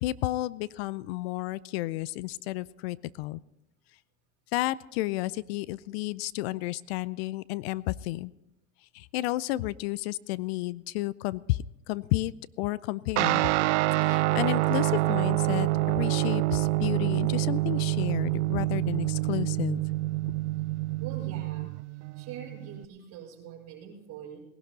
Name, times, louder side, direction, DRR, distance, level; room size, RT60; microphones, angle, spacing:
voice 1, 0.0-3.4 4.5-8.3 8.9-13.4 14.0-19.8, left 17 dB, 50° left, 21 dB, 0.5 m, -32 dB
Guitar, 13.2-22.8, right 19 dB, 60° right, 0.5 m, -27 dB
voice 2, 21.0-21.7 22.2-24.4, right 8 dB, 40° right, 0 dB, 4.9 m, -43 dB
19.0 x 11.5 x 4.0 m, 0.91 s
hypercardioid pair, 115°, 40 cm